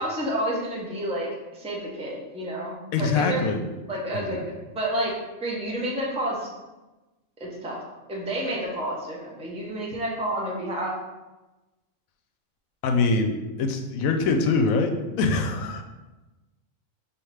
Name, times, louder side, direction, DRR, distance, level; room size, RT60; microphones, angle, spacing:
voice 1, 0.0-3.5 3.9-4.4 4.7-5.1 5.4-6.5 7.4-7.8 8.1-10.9, right 1 dB, 5° right, -3 dB, 0.5 m, -30 dB
voice 2, 2.9-3.6 4.1-4.4 12.8-15.8, left 3 dB, 90° left, 5 dB, 1.0 m, -24 dB
4.9 x 2.7 x 3.2 m, 1.1 s
omnidirectional pair, 1.4 m